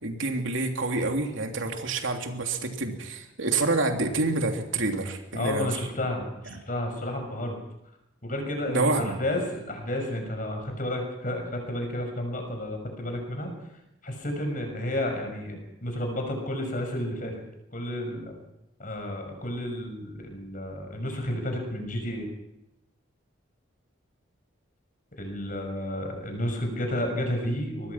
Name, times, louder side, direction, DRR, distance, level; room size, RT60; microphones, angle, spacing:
voice 1, 0.0-5.7 8.7-9.1, right 3 dB, 75° right, 3 dB, 3.1 m, -27 dB
voice 2, 5.3-7.6 8.2-13.5 14.0-17.4 17.7-18.3 18.8-22.3 25.2-27.9, left 1 dB, 40° left, 4 dB, 6.3 m, -31 dB
24.5 x 19.5 x 6.0 m, 0.90 s
head